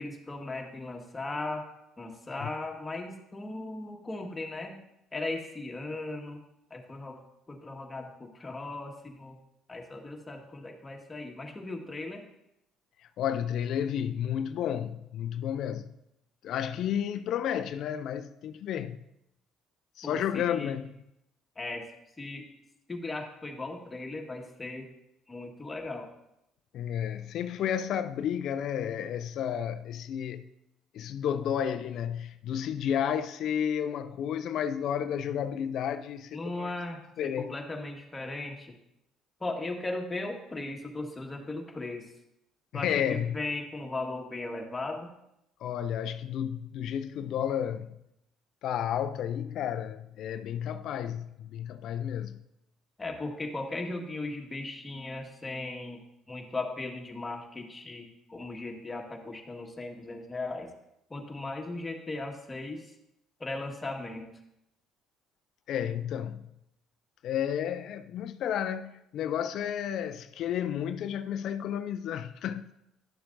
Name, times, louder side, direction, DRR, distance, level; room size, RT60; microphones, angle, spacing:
voice 1, 0.0-1.7 2.0-4.8 5.1-6.4 6.7-7.2 7.5-9.3 9.7-12.2 20.0-20.7 21.5-21.9 22.2-22.5 22.9-24.9 25.3-26.1 36.3-38.7 39.4-42.1 42.7-45.1 53.0-60.7 61.1-62.9 63.4-64.2, left 2 dB, 20° left, 1.5 m, -37 dB
voice 2, 13.2-15.9 16.4-19.0 20.0-20.9 26.7-30.5 30.9-36.7 37.2-37.6 42.7-43.4 45.6-48.0 48.6-52.4 65.7-66.5 67.2-72.7, left 9 dB, 65° left, 0.4 m, -32 dB
11.5 x 7.0 x 2.6 m
supercardioid pair, 65°, 0 cm